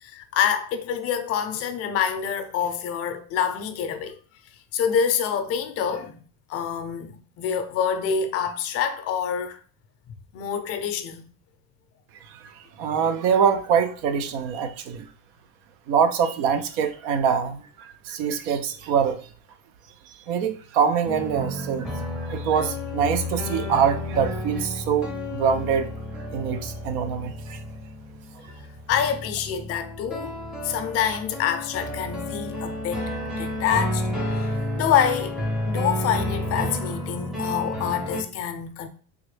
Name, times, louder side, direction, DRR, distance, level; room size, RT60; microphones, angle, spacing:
voice 1, 0.0-4.2 4.7-6.2 6.5-9.6 10.3-11.2 28.9-30.3 30.6-33.0 33.4-34.0 34.3-34.5 34.8-35.4 35.7-38.9, left 8 dB, 50° left, 0.5 m, -26 dB
voice 2, 12.3-15.1 15.9-19.2 20.1-25.9 26.3-27.6, right 7 dB, 80° right, 0.6 m, -24 dB
sound 1, 21.0-38.2, left 1 dB, ahead, 0.5 m, -31 dB
3.5 x 2.1 x 3.2 m
cardioid pair, 130°, 32 cm